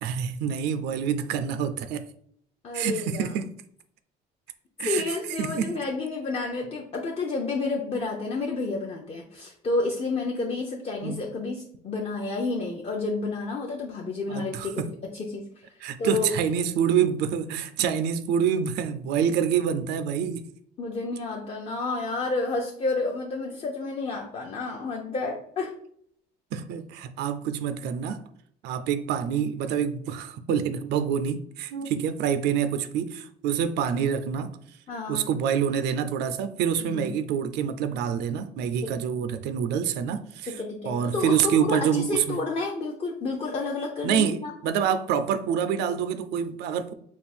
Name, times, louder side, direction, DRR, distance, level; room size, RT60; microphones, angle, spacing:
voice 1, 0.0-2.1 2.7-3.5 4.8-5.7 11.0-11.2 14.3-14.9 15.8-20.4 26.5-28.2 28.6-34.5 35.1-42.4 44.0-46.9, right 8 dB, 80° right, 0.4 m, -27 dB
voice 2, 2.6-3.3 4.8-14.7 15.1-15.4 16.0-16.3 20.8-25.8 34.9-35.3 36.9-37.2 38.8-38.9 40.5-44.5, left 3 dB, 35° left, 0.6 m, -30 dB
3.6 x 2.4 x 4.3 m
cardioid pair, 110°, 17 cm